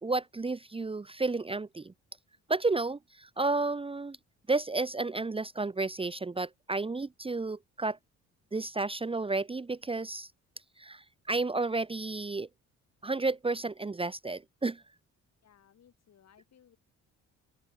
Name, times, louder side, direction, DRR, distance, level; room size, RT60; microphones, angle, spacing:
voice 1, 0.0-1.9 2.5-4.2 4.5-8.0 8.5-10.3 10.8-12.5 13.0-14.8, right 3 dB, 20° right, 0.9 m, -32 dB
voice 2, 15.4-16.8, left 9 dB, 60° left, 7.2 m, -62 dB
open air
cardioid pair, 90°, 30 cm